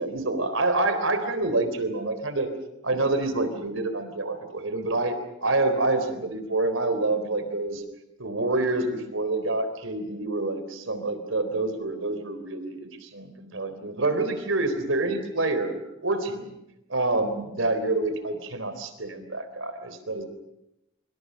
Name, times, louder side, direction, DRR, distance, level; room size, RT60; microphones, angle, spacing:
voice 1, 0.0-2.5 2.8-7.8 8.2-16.5 16.9-20.3, right 2 dB, 75° right, 10 dB, 3.9 m, -27 dB
26.5 x 24.5 x 6.5 m, 0.88 s
head